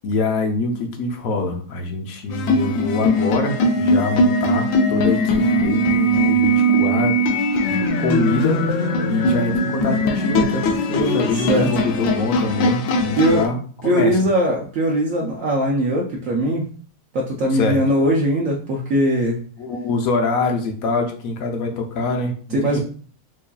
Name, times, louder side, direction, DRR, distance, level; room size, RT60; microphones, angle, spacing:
voice 1, 0.0-7.1 7.7-8.6 9.1-13.6 13.8-14.1 17.5-17.8 19.6-22.4 22.6-22.8, left 2 dB, 65° left, 3 dB, 0.9 m, -24 dB
sound 1, 2.3-13.5, equal, 80° left, 1.3 m, -20 dB
voice 2, 11.3-11.7 13.1-13.5 13.8-16.7 17.1-19.4 22.5-22.8, equal, 75° right, -2 dB, 0.7 m, -20 dB
4.7 x 2.7 x 2.3 m, 0.43 s
omnidirectional pair, 2.1 m